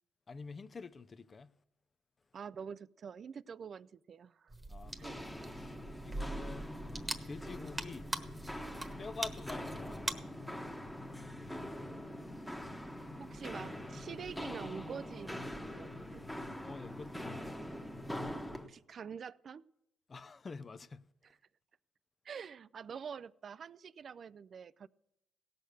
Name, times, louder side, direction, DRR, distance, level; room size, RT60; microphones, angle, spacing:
voice 1, 0.3-1.5 4.7-5.8 6.0-6.8 7.2-8.1 9.0-10.2 11.4-11.8 16.6-17.6 20.1-21.1, left 4 dB, 35° left, 0.5 m, -47 dB
voice 2, 2.3-4.5 5.0-5.2 13.2-16.2 18.7-19.6 21.2-21.4 22.2-24.9, right 6 dB, 50° right, 0.4 m, -46 dB
sound 1, 4.5-10.1, right 2 dB, 20° right, 1.2 m, -42 dB
Walk footsteps, 4.9-18.7, left 1 dB, 5° left, 1.2 m, -44 dB
17.0 x 6.6 x 6.6 m
cardioid pair, 90°, 0 cm